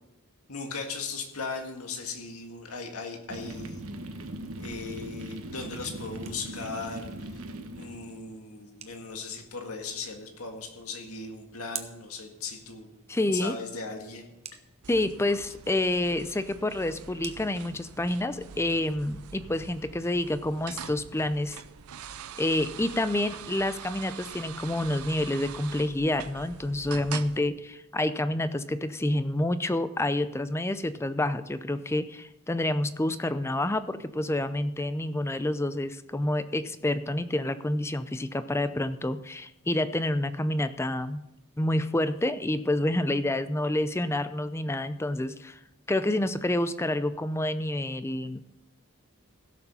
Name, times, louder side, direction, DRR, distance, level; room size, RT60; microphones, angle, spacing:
voice 1, 0.5-3.9 4.6-7.4 7.7-12.9 13.3-14.3 18.7-18.8, left 4 dB, 80° left, 3 dB, 1.8 m, -38 dB
sound 1, 3.3-8.3, right 1 dB, 70° right, 1.2 m, -40 dB
sound 2, 5.8-18.2, right 7 dB, 30° right, 0.9 m, -50 dB
voice 2, 13.1-13.5 14.9-21.6 22.4-41.3 41.6-45.6 45.9-48.4, left 1 dB, 10° left, 12 dB, 0.5 m, -28 dB
sound 3, 14.8-27.4, right 8 dB, 85° right, 0.6 m, -44 dB
16.0 x 6.9 x 5.6 m, 0.86 s
head